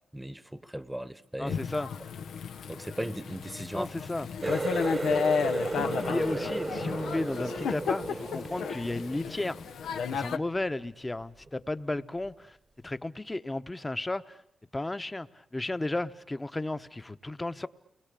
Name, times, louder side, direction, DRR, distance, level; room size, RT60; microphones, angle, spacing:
voice 1, 0.1-1.6 2.7-3.9 4.4-4.6, right 1 dB, 5° right, 1.1 m, -37 dB
voice 2, 1.4-1.9 3.7-4.3 6.1-9.6 10.1-14.4 14.7-17.7, left 2 dB, 20° left, 1.1 m, -34 dB
Thunder / Rain, 1.5-10.4, left 6 dB, 85° left, 1.1 m, -33 dB
Water tap faucet, 4.4-9.9 10.3-10.8 11.2-11.5 12.2-12.3, right 3 dB, 35° right, 1.2 m, -34 dB
29.5 x 21.0 x 8.5 m
cardioid pair, 70°, 0 cm